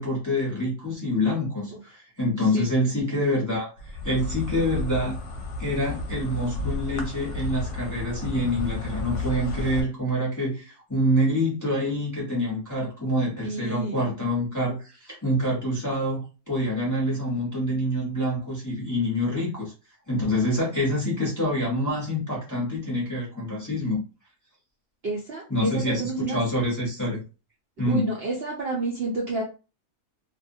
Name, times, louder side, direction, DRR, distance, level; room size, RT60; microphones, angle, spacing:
voice 1, 0.0-5.2 5.6-19.7 20.1-24.0 25.5-27.2 27.8-28.1, left 1 dB, 15° left, -6 dB, 0.7 m, -26 dB
Insect, 3.8-9.8, left 2 dB, 65° left, 0.9 m, -32 dB
voice 2, 13.4-14.0 25.0-26.4 27.9-29.4, right 3 dB, 55° right, -3 dB, 0.7 m, -29 dB
2.5 x 2.2 x 2.6 m, 0.33 s
omnidirectional pair, 1.6 m